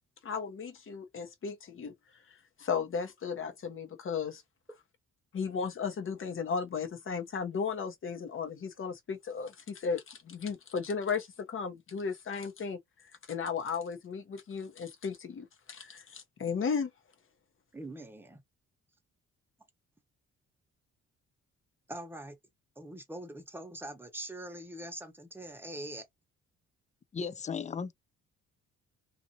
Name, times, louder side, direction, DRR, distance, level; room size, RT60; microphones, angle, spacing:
voice 1, 0.2-1.9 2.6-4.4 5.3-12.8 13.3-16.9, left 6 dB, 45° left, 0.9 m, -35 dB
voice 2, 17.7-18.4 21.9-22.4 22.8-26.0, right 1 dB, 5° right, 1.0 m, -43 dB
voice 3, 27.1-27.9, left 5 dB, 25° left, 0.4 m, -35 dB
2.6 x 2.6 x 2.7 m
cardioid pair, 90°, 30 cm